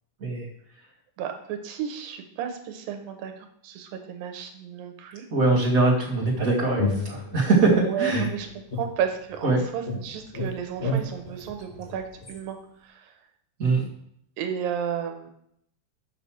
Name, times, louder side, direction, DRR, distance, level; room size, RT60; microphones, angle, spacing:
voice 1, 1.2-5.3 7.8-8.5 8.7-12.6 12.8-13.1 14.4-15.3, right 8 dB, 85° right, 5 dB, 2.7 m, -33 dB
voice 2, 5.3-8.3 9.4-9.6 13.6-13.8, right 3 dB, 30° right, -4 dB, 1.7 m, -22 dB
sound 1, 6.2-7.7 8.1-9.5 9.9-12.4, left 1 dB, 50° left, 0.7 m, -31 dB
8.1 x 5.4 x 6.2 m, 0.72 s
omnidirectional pair, 4.0 m